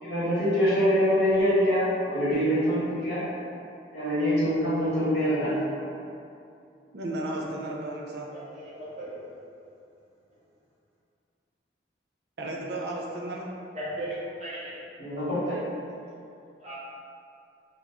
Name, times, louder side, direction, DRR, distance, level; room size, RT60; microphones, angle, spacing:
voice 1, 0.0-3.2 3.9-5.8 15.0-15.6, equal, 75° left, -11 dB, 1.2 m, -25 dB
voice 2, 6.9-8.3 12.4-13.5, right 1 dB, 65° right, -2 dB, 0.4 m, -34 dB
voice 3, 8.5-9.3 13.7-14.7 16.6-16.7, right 1 dB, 40° right, -10 dB, 1.0 m, -36 dB
2.9 x 2.5 x 3.2 m, 2.5 s
head